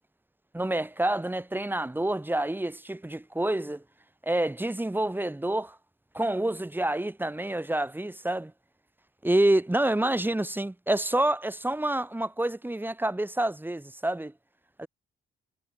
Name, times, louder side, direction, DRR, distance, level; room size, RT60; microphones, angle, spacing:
voice 1, 0.5-3.8 4.2-5.8 6.1-8.5 9.2-14.3 14.8-14.9, right 1 dB, 10° right, 5.2 m, -28 dB
cardioid pair, 90°, 20 cm